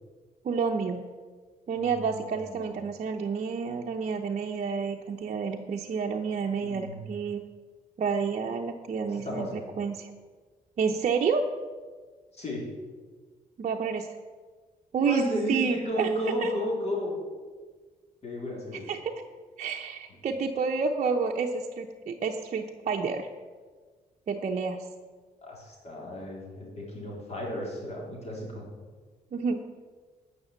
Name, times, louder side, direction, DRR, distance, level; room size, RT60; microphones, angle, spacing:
voice 1, 0.4-1.0 1.7-7.4 8.0-9.5 9.8-10.1 10.8-11.5 13.6-14.1 14.9-16.1 16.4-16.5 18.9-19.1 19.6-23.3 24.3-24.8 29.3-29.6, right 5 dB, 50° right, 1 dB, 0.7 m, -29 dB
voice 2, 1.7-2.8 6.6-7.1 9.1-9.7 12.3-12.7 15.0-17.1 18.2-18.9 25.4-28.7, equal, 45° left, -3 dB, 3.6 m, -33 dB
9.7 x 6.1 x 7.9 m, 1.4 s
cardioid pair, 105°, 16 cm